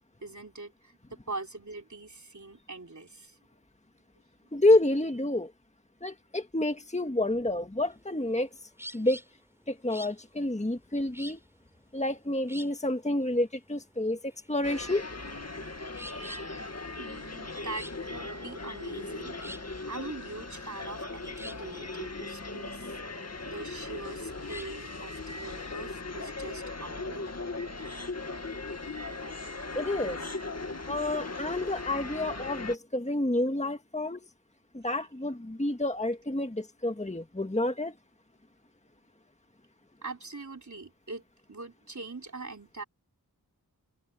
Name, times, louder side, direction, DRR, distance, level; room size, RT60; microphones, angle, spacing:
voice 1, 0.2-3.4 16.9-19.6 19.9-23.0 23.5-27.3 34.9-35.0 40.0-41.2 41.5-42.8, right 3 dB, 45° right, 3.7 m, -42 dB
voice 2, 4.5-5.5 6.0-8.5 8.9-9.2 9.7-11.4 11.9-15.0 16.1-16.5 29.7-30.2 30.9-34.3 34.7-37.9, left 1 dB, 20° left, 1.7 m, -29 dB
sound 1, 7.9-24.8, equal, 5° right, 4.9 m, -49 dB
sound 2, 14.6-32.8, left 3 dB, 40° left, 2.0 m, -38 dB
open air
wide cardioid pair, 40°, 38 cm